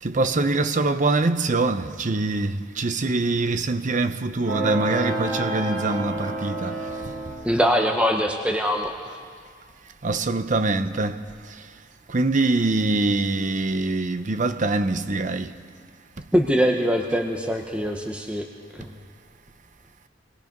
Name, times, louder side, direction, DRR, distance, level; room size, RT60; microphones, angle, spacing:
voice 1, 0.0-7.1 10.0-11.7 12.1-15.5, right 2 dB, 40° right, 0.8 m, -24 dB
sound 1, 4.5-7.3, right 2 dB, 70° right, 6.0 m, -28 dB
voice 2, 7.4-9.2 16.3-18.4 18.7-18.9, equal, 5° right, 1.0 m, -23 dB
26.0 x 20.5 x 5.3 m
head